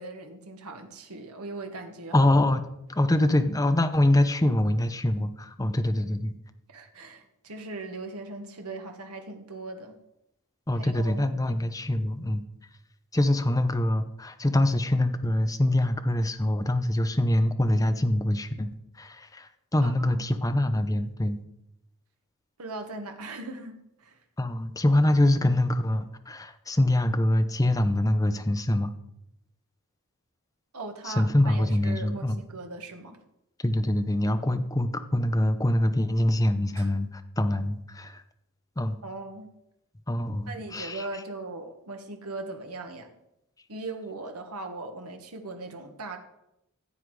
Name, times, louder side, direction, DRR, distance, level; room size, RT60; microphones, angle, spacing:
voice 1, 0.0-2.3 6.7-10.0 10.7-11.7 19.8-20.3 22.6-24.2 30.7-33.2 36.8-36.9 39.0-39.5 40.5-43.1 43.7-46.2, right 3 dB, 80° right, 5 dB, 1.6 m, -39 dB
voice 2, 2.1-2.6 2.9-6.3 10.7-12.4 13.1-18.7 19.0-21.4 24.4-28.9 31.1-32.4 33.6-37.1 37.4-38.2 38.8-39.0 40.1-41.0, left 1 dB, 15° left, 8 dB, 0.8 m, -24 dB
15.0 x 8.0 x 4.8 m, 0.84 s
head